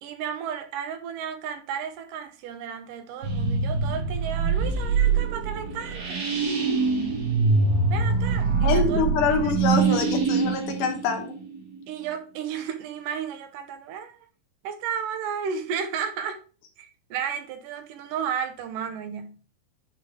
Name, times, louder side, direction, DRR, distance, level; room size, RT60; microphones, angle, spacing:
voice 1, 0.0-6.2 7.9-9.1 9.4-9.5 9.9-10.2 11.9-14.2 14.6-16.4 16.8-19.6, right 7 dB, 80° right, 2.5 m, -33 dB
sound 1, 3.2-11.8, right 4 dB, 40° right, 1.5 m, -24 dB
voice 2, 8.6-11.3, left 5 dB, 75° left, 2.7 m, -25 dB
10.0 x 4.0 x 3.8 m
omnidirectional pair, 3.8 m